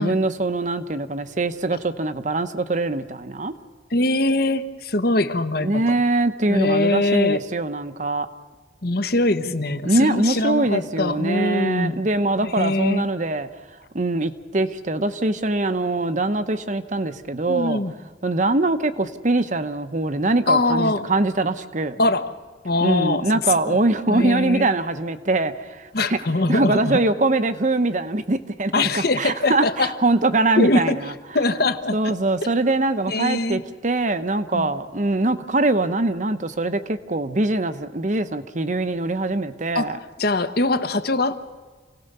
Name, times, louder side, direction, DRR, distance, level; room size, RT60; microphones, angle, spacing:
voice 1, 0.0-3.5 5.6-8.3 9.8-13.5 13.9-17.8 18.2-22.0 22.8-26.2 26.5-31.0 31.9-40.0, right 2 dB, 40° right, 10 dB, 1.0 m, -23 dB
voice 2, 3.9-6.0 6.5-7.4 8.8-12.0 12.4-13.1 17.5-17.9 20.5-21.1 22.0-22.3 22.6-23.8 24.1-24.7 25.9-27.0 28.7-29.9 30.6-31.0 31.3-32.1 33.1-33.6 34.5-34.7 39.7-41.4, left 2 dB, 55° left, 10 dB, 1.2 m, -22 dB
28.0 x 18.0 x 6.8 m, 1.4 s
head